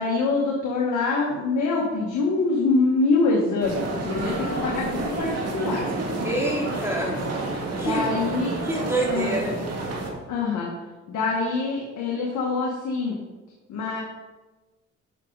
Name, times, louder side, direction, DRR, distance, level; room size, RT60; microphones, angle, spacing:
voice 1, 0.0-5.9 7.8-8.6 9.1-9.4 10.3-10.7 11.1-13.1 13.7-14.0, left 3 dB, 75° left, -2 dB, 1.8 m, -24 dB
sound 1, 3.6-10.1, right 2 dB, 55° right, 2.4 m, -29 dB
voice 2, 6.2-7.2 7.8-8.1 8.6-9.5, right 2 dB, 10° right, -2 dB, 2.7 m, -26 dB
11.5 x 6.0 x 4.1 m, 1.2 s
cardioid pair, 90°, 30 cm